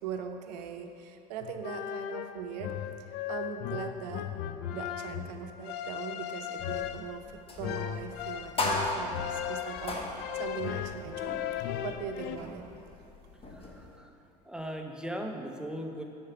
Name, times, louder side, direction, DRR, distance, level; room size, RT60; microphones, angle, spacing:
voice 1, 0.0-2.7 3.0-4.3 4.7-10.0 10.3-11.4 11.8-12.7 13.6-13.7, right 7 dB, 80° right, 6 dB, 0.5 m, -40 dB
sound 1, 1.4-12.4, left 11 dB, 50° left, 0.4 m, -37 dB
sound 2, 6.6-14.0, left 1 dB, 25° left, 1.0 m, -38 dB
voice 2, 13.5-16.0, equal, 5° right, 3 dB, 0.5 m, -39 dB
5.8 x 4.7 x 5.8 m, 2.8 s
hypercardioid pair, 90°, 21 cm